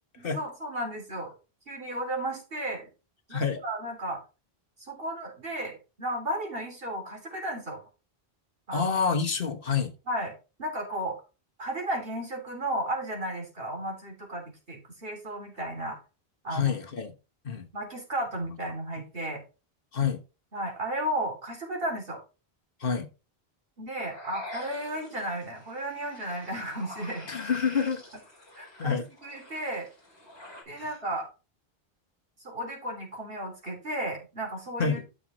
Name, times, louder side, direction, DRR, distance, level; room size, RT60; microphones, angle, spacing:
voice 1, 0.2-1.3 1.7-2.9 3.3-4.2 4.8-7.8 8.7-9.0 10.1-10.3 10.6-11.2 11.6-16.0 16.4-16.8 17.7-19.4 20.5-22.2 23.8-27.3 28.6-29.9 30.7-31.3 32.4-35.0, right 1 dB, 65° right, 3.0 m, -34 dB
voice 2, 8.7-9.9 16.5-17.1 17.4-17.7 19.0-19.1 19.9-20.2 22.8-23.1 27.3-28.0 28.8-29.1 30.7-30.9 34.8-35.0, left 6 dB, 60° left, 1.4 m, -28 dB
sound 1, 24.0-30.6, left 1 dB, 25° left, 3.9 m, -46 dB
12.5 x 6.3 x 3.0 m
omnidirectional pair, 1.0 m